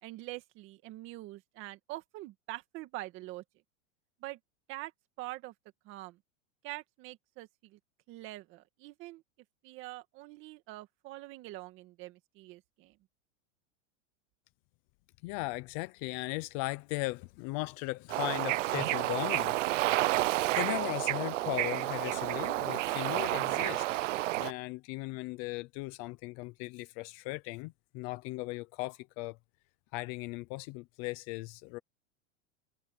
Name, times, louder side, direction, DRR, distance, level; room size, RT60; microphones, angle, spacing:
voice 1, 0.0-3.4 4.2-4.4 4.7-4.9 5.2-5.5 5.8-6.2 6.6-7.8 8.1-9.2 9.6-13.0, right 18 dB, 30° right, 2.1 m, -44 dB
voice 2, 15.2-24.0 24.3-29.4 29.9-31.8, left 22 dB, 30° left, 0.6 m, -38 dB
Bird / Ocean, 18.1-24.5, right 17 dB, 80° right, 0.6 m, -30 dB
supercardioid pair, 160°, 37 cm